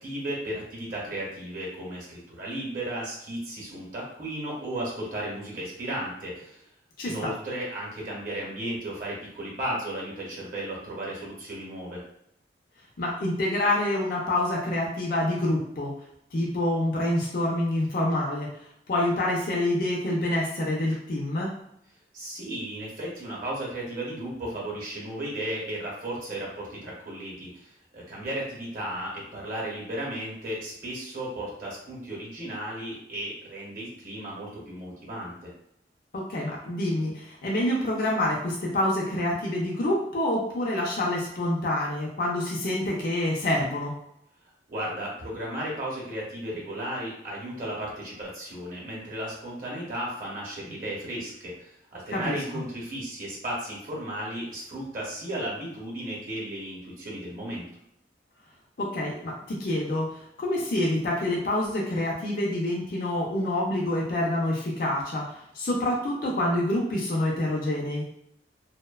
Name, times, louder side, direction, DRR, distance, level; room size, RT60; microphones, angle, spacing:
voice 1, 0.0-6.6 7.0-12.0 22.1-35.5 44.7-57.7, right 1 dB, 50° right, -3 dB, 0.8 m, -35 dB
voice 2, 7.0-7.3 13.0-15.9 16.3-18.5 18.9-21.5 36.1-43.9 52.1-52.4 58.8-68.0, left 1 dB, 55° left, -3 dB, 0.4 m, -27 dB
2.6 x 2.1 x 2.2 m, 0.76 s
head